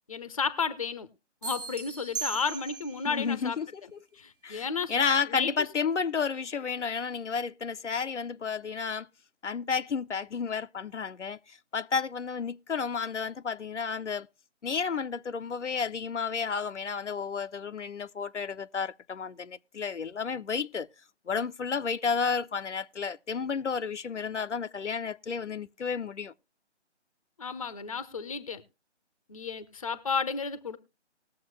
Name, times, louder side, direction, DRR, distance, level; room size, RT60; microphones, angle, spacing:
voice 1, 0.1-1.1 1.4-3.6 4.2-4.9 5.3-5.5 27.4-28.6 29.3-30.8, left 5 dB, 30° left, 0.6 m, -32 dB
sound 1, 1.4-3.1, right 5 dB, 45° right, 1.1 m, -37 dB
voice 2, 3.1-4.0 4.4-9.1 9.4-14.3 14.6-20.9 21.3-26.3, left 6 dB, 75° left, 0.6 m, -32 dB
20.0 x 7.2 x 3.1 m
figure-of-eight pair, 150°, 36 cm